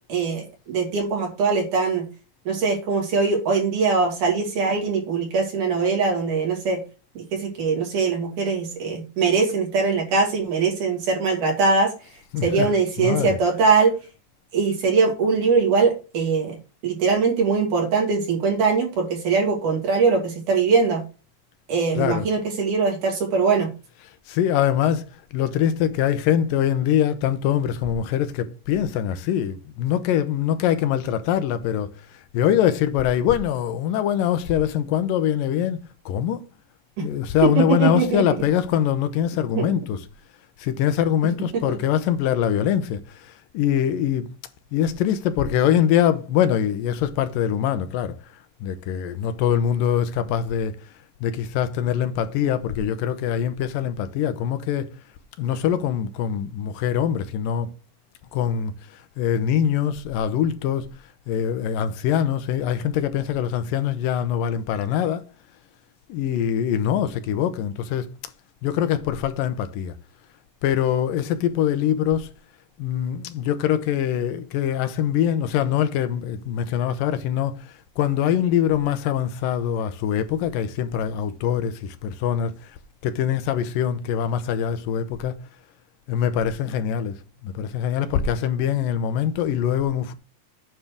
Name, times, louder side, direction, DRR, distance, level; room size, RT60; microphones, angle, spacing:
voice 1, 0.1-2.0 2.5-6.8 7.2-11.9 12.4-14.0 14.5-16.6 16.8-21.0 21.7-23.7 37.0-37.1 37.4-38.2 39.5-39.7 41.5-41.8, right 4 dB, 65° right, 4.3 m, -21 dB
voice 2, 12.3-13.6 22.0-22.3 24.0-36.4 37.0-40.1 40.6-44.3 44.7-48.2 48.6-50.9 51.2-55.0 55.4-57.7 58.3-60.9 61.3-65.3 66.1-68.1 68.6-70.0 70.6-72.3 72.8-82.7 83.0-85.3 86.1-90.2, left 9 dB, 85° left, 2.5 m, -23 dB
9.4 x 4.4 x 6.6 m
omnidirectional pair, 3.9 m